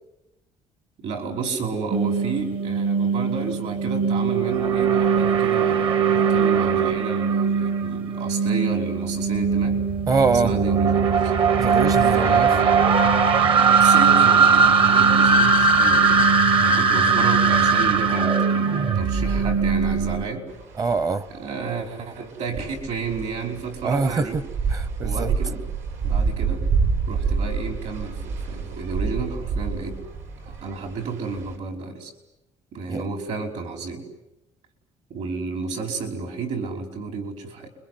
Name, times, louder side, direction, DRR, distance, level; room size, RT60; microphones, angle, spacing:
voice 1, 1.0-9.8 10.4-11.3 12.0-12.9 13.5-20.5 21.3-24.4 24.7-25.6 26.0-26.6 27.1-30.0 30.4-32.1 32.7-34.1 35.1-37.7, right 4 dB, 65° right, 5.4 m, -31 dB
sound 1, 1.9-20.2, right 5 dB, 45° right, 1.3 m, -19 dB
voice 2, 10.1-10.5 11.6-12.5 20.8-21.3 23.8-24.3 24.7-25.3 32.9-33.0, right 4 dB, 30° right, 0.9 m, -23 dB
sound 2, 20.5-31.6, right 5 dB, 80° right, 5.2 m, -28 dB
29.0 x 24.0 x 8.0 m
cardioid pair, 135°, 12 cm